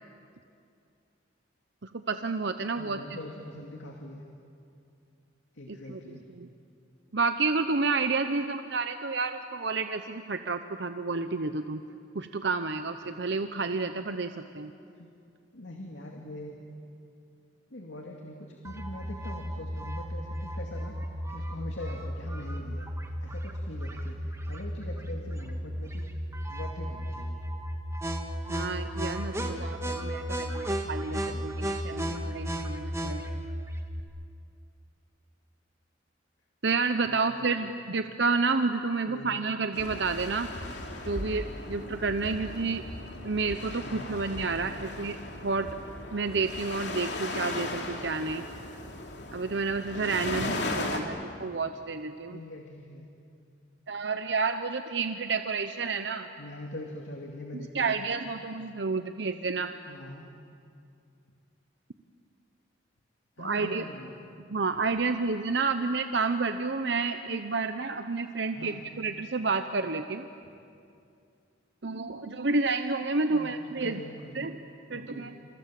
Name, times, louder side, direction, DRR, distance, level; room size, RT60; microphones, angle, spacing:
voice 1, 1.8-3.0 5.7-6.5 7.1-11.8 12.1-14.7 28.5-33.4 36.6-40.5 41.0-42.8 43.2-45.2 45.4-45.7 46.1-48.4 49.3-52.4 53.9-56.3 57.5-59.7 63.4-63.9 64.5-70.3 71.8-74.0 74.3-74.6 74.9-75.3, right 4 dB, 65° right, 8 dB, 0.9 m, -30 dB
voice 2, 2.8-4.2 5.5-6.3 15.0-15.1 15.5-16.6 17.7-22.9 23.2-26.2 26.5-27.4 31.1-31.5 37.1-37.8 39.0-39.4 43.8-44.8 52.3-53.1 56.4-58.0 59.8-60.3 63.4-64.2 68.5-68.8 73.3-74.5 74.9-75.3, left 1 dB, 85° left, 1 dB, 2.5 m, -43 dB
sound 1, 18.6-34.0, equal, 15° right, 2.0 m, -34 dB
sound 2, 39.7-51.0, left 2 dB, 65° left, 3.1 m, -37 dB
28.0 x 27.5 x 7.7 m, 2.5 s
head